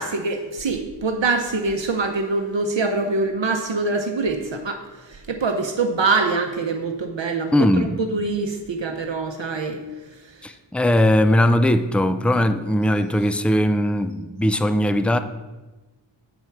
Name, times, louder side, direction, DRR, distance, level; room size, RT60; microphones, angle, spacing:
voice 1, 0.0-9.8 10.4-10.5, right 3 dB, 70° right, 4 dB, 0.7 m, -24 dB
voice 2, 7.5-8.0 10.4-15.2, left 1 dB, 5° left, 10 dB, 0.4 m, -19 dB
8.0 x 4.6 x 5.7 m, 1.2 s
wide cardioid pair, 45°, 46 cm